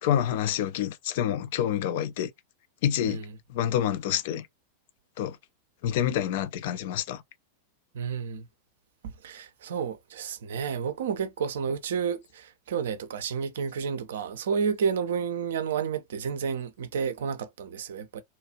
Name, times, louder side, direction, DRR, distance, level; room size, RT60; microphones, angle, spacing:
voice 1, 0.0-2.3 2.8-3.2 3.5-4.5 5.2-5.4 5.8-7.2, left 10 dB, 50° left, 0.4 m, -27 dB
voice 2, 7.9-8.5 9.0-18.2, right 6 dB, 60° right, 0.5 m, -31 dB
2.8 x 2.4 x 2.8 m
figure-of-eight pair, 90°, 0 cm